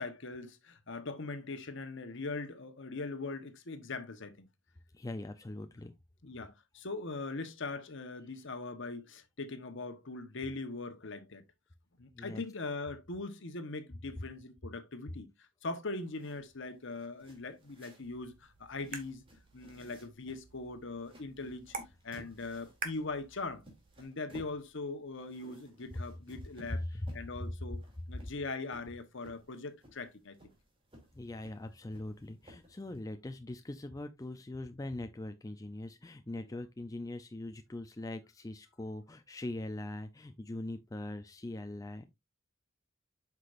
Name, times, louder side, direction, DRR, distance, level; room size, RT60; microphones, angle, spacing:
voice 1, 0.0-4.5 6.2-11.4 12.0-19.2 19.5-21.7 22.0-23.6 24.0-26.8 27.1-30.4, left 3 dB, 65° left, 1.1 m, -41 dB
voice 2, 4.9-5.9 12.1-12.4 26.7-27.1 31.1-42.1, left 1 dB, 15° left, 0.5 m, -41 dB
sound 1, 16.0-33.0, equal, 25° right, 2.8 m, -58 dB
sound 2, 18.0-24.0, right 5 dB, 45° right, 1.6 m, -48 dB
8.1 x 5.9 x 2.5 m
head